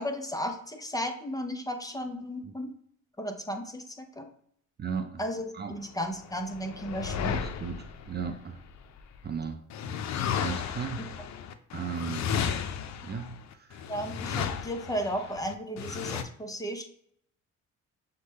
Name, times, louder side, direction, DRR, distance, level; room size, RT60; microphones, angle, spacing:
voice 1, 0.0-2.7 3.2-4.3 5.2-7.4 13.9-16.9, equal, 10° left, 5 dB, 0.6 m, -34 dB
voice 2, 4.8-5.2 5.5-5.8 7.3-8.6 9.2-9.6 10.4-11.1 11.7-12.3 13.0-13.9, right 6 dB, 35° right, 6 dB, 0.4 m, -36 dB
sound 1, 6.1-9.2 9.7-16.2, left 7 dB, 65° left, 0.5 m, -34 dB
6.5 x 2.2 x 3.3 m, 0.66 s
cardioid pair, 90°, 30 cm